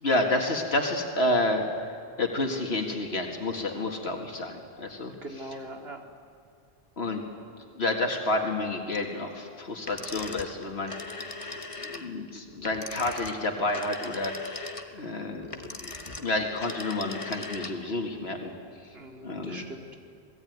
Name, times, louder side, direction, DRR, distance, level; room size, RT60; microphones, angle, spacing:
voice 1, 0.0-1.7 2.2-5.6 7.0-7.2 7.7-11.1 11.8-15.9 16.2-18.5 19.2-19.7, left 2 dB, 85° left, 2 dB, 2.1 m, -30 dB
voice 2, 5.1-6.0 18.9-20.0, right 1 dB, 75° right, 3 dB, 2.6 m, -42 dB
sound 1, 9.8-18.0, left 3 dB, 30° left, 1.4 m, -39 dB
27.5 x 18.5 x 9.4 m, 2.3 s
omnidirectional pair, 1.0 m